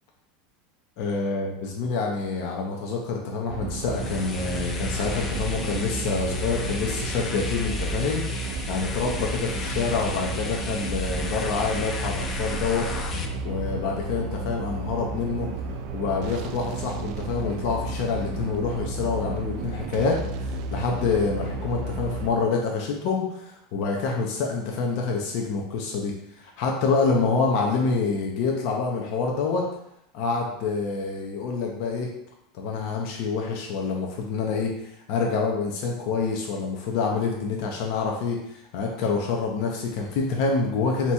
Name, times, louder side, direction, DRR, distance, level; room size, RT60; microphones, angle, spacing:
voice 1, 1.0-12.9 13.4-15.5 15.9-29.7 30.1-32.1 32.5-34.7 35.1-41.1, left 4 dB, 65° left, 0 dB, 0.7 m, -27 dB
sound 1, 3.5-22.3, right 2 dB, 60° right, 0.4 m, -32 dB
sound 2, 3.9-13.3, left 2 dB, 25° left, 0.5 m, -33 dB
3.5 x 2.9 x 4.2 m, 0.79 s
supercardioid pair, 120°, 0 cm